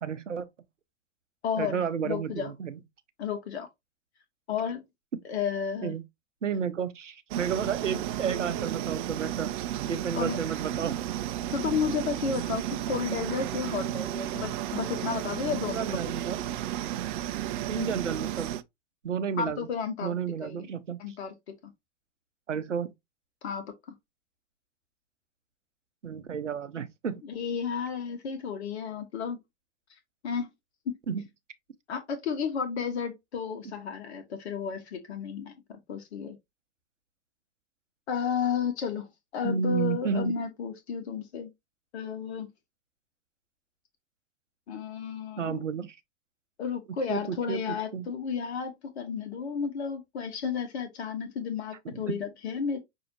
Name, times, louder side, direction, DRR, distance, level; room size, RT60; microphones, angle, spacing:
voice 1, 0.0-0.5 1.6-2.8 5.8-6.0 6.4-9.5 9.9-11.0 15.7-16.4 17.7-18.5 19.0-19.7 20.0-21.2 22.5-22.9 26.0-27.2 31.1-31.2 39.4-40.3 45.4-46.0 47.1-48.1 51.8-52.2, right 7 dB, 85° right, 0.7 m, -31 dB
voice 2, 1.4-2.5 3.2-3.7 4.5-4.8 5.2-5.9 10.1-10.4 11.5-15.9 19.4-20.1 20.4-20.7 21.0-21.3 23.4-23.9 27.2-29.4 30.2-30.5 30.9-31.0 31.9-35.6 35.9-36.4 38.1-41.5 41.9-42.5 44.7-45.6 46.6-52.8, left 6 dB, 65° left, 1.3 m, -32 dB
sound 1, 7.3-18.6, right 12 dB, 45° right, 0.5 m, -33 dB
6.2 x 2.8 x 2.8 m
figure-of-eight pair, 100°, 36 cm